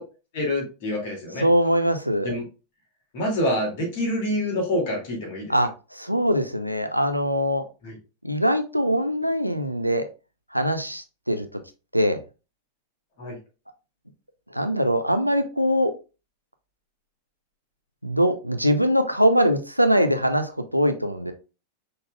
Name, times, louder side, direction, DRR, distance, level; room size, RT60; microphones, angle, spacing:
voice 1, 0.3-1.5 2.2-2.4 3.1-5.5 7.8-8.0 13.2-13.4, left 1 dB, 50° left, 1 dB, 2.2 m, -26 dB
voice 2, 1.4-2.3 5.5-7.6 8.2-10.1 10.5-11.5 11.9-12.2 14.5-15.9 18.0-21.3, equal, 90° right, 8 dB, 0.5 m, -22 dB
5.5 x 3.9 x 2.2 m, 0.31 s
figure-of-eight pair, 90°, 0 cm